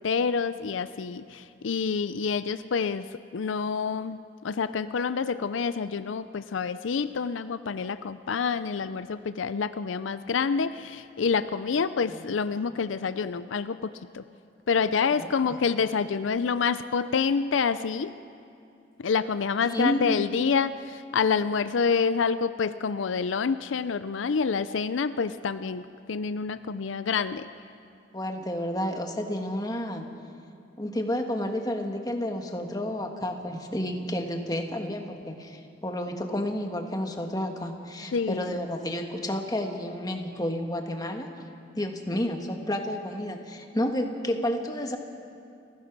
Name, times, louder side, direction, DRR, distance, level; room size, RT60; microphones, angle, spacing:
voice 1, 0.0-3.1 3.3-14.2 14.7-18.1 19.0-25.8 26.1-27.5 38.1-38.6, left 5 dB, 85° left, 13 dB, 0.5 m, -27 dB
voice 2, 15.1-15.6 19.7-20.1 28.1-30.1 30.8-41.3 41.7-45.0, left 1 dB, 20° left, 4 dB, 1.4 m, -31 dB
29.0 x 15.5 x 6.1 m, 2.5 s
head